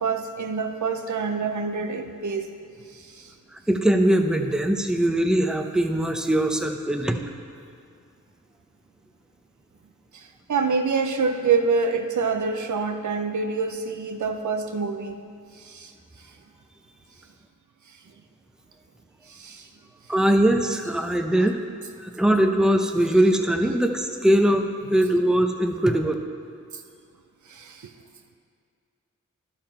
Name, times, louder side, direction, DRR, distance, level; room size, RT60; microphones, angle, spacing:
voice 1, 0.0-2.5 10.5-15.2 15.7-15.9 19.4-19.6 21.4-21.5 27.5-27.8, right 5 dB, 70° right, 5 dB, 0.7 m, -26 dB
voice 2, 3.5-7.2 20.1-21.6 22.0-26.1, right 1 dB, ahead, 4 dB, 0.7 m, -21 dB
12.0 x 5.8 x 4.4 m, 2.4 s
cardioid pair, 45°, 31 cm